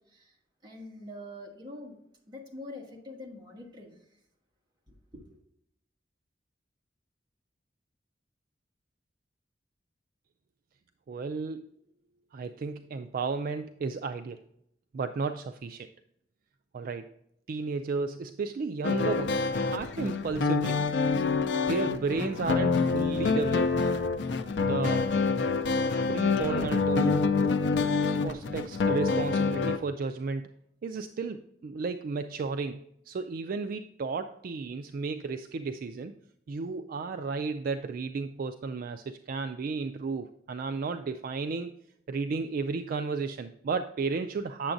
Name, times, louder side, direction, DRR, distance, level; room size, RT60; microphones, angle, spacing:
voice 1, 0.6-2.0 2.3-4.0 4.9-5.2, left 1 dB, 25° right, 0 dB, 1.4 m, -44 dB
voice 2, 11.1-11.6 12.3-14.4 14.9-15.9 16.7-17.1 17.5-19.5 19.7-20.8 21.6-23.7 24.6-25.1 26.1-27.3 28.2-30.5 30.8-36.1 36.5-41.7 42.1-44.7, right 4 dB, 50° right, 9 dB, 0.3 m, -33 dB
sound 1, 18.8-29.8, left 4 dB, 75° left, 0.5 m, -27 dB
8.8 x 6.9 x 2.6 m, 0.75 s
head